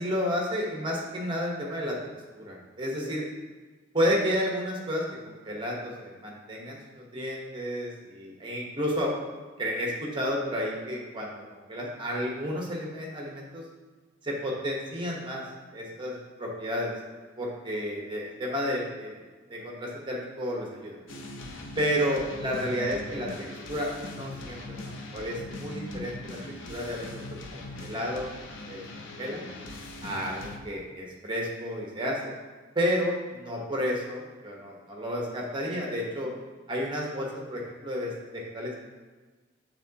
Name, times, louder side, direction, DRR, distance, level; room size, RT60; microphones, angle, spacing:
voice 1, 0.0-2.0 2.3-3.2 3.9-9.1 9.6-13.6 14.2-15.4 15.7-16.9 17.4-19.2 19.5-21.0 21.8-23.3 23.7-26.4 26.7-27.1 27.5-28.3 28.7-29.4 30.0-32.2 32.7-36.3 36.7-38.8, equal, 25° right, -2 dB, 1.0 m, -31 dB
sound 1, 21.1-30.6, left 2 dB, 80° left, 0.7 m, -41 dB
8.9 x 3.8 x 2.8 m, 1.3 s
head